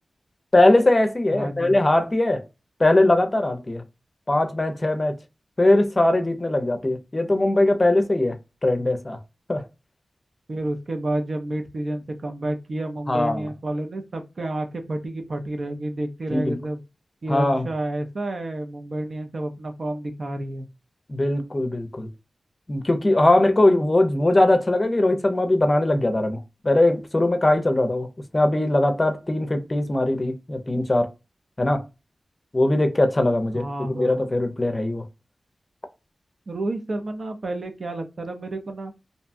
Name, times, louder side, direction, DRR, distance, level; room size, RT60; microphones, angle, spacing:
voice 1, 0.5-2.4 2.8-3.8 4.3-5.2 5.6-8.4 8.6-9.2 9.5-9.6 13.1-13.5 16.3-16.6 17.3-17.7 21.1-22.1 22.7-28.1 28.3-31.1 31.6-31.8 32.5-35.0, left 1 dB, 30° left, 0.5 m, -20 dB
voice 2, 1.3-1.8 10.5-16.8 17.2-20.7 33.5-34.2 36.5-38.9, right 1 dB, 65° right, 0.6 m, -30 dB
2.6 x 2.2 x 2.5 m
wide cardioid pair, 70°, 0 cm